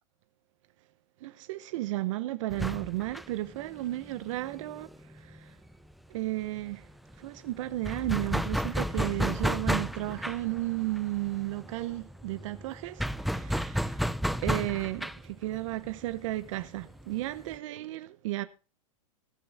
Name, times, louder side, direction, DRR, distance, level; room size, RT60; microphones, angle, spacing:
voice 1, 1.2-4.9 5.2-5.5 6.1-6.9 7.2-14.0 14.4-18.5, right 17 dB, 60° right, 0.9 m, -34 dB
sound 1, 2.5-5.9 6.2-6.3 6.6-17.6, equal, ahead, 0.5 m, -33 dB
21.0 x 8.0 x 3.5 m
hypercardioid pair, 120°, 18 cm